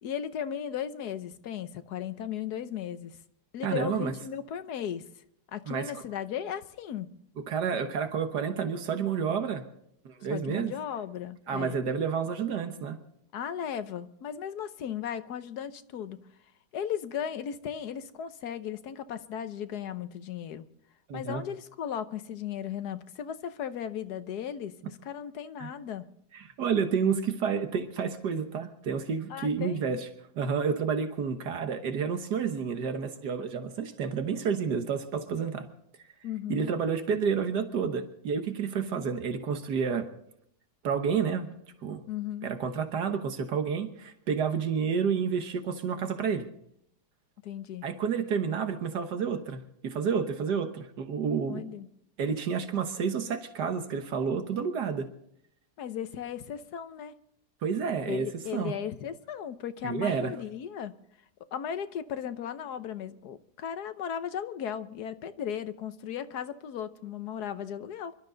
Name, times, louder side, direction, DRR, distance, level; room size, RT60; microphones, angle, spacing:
voice 1, 0.0-3.2 3.5-5.0 5.5-7.1 10.3-11.8 13.3-16.2 16.7-20.7 21.1-26.1 29.3-29.8 36.2-36.7 42.1-42.5 47.4-47.8 51.5-51.9 55.8-57.1 58.0-60.9 61.5-68.1, left 9 dB, 75° left, 11 dB, 1.4 m, -36 dB
voice 2, 3.6-4.1 5.7-5.9 7.5-9.6 10.0-10.7 11.5-13.0 21.1-21.4 25.6-25.7 26.3-30.1 30.3-35.7 36.5-40.1 40.8-41.5 41.8-42.0 42.4-46.5 47.8-51.7 52.2-55.1 57.6-58.7 59.8-60.3, right 6 dB, 80° right, 8 dB, 1.8 m, -30 dB
26.0 x 12.5 x 3.9 m, 0.73 s
omnidirectional pair, 1.7 m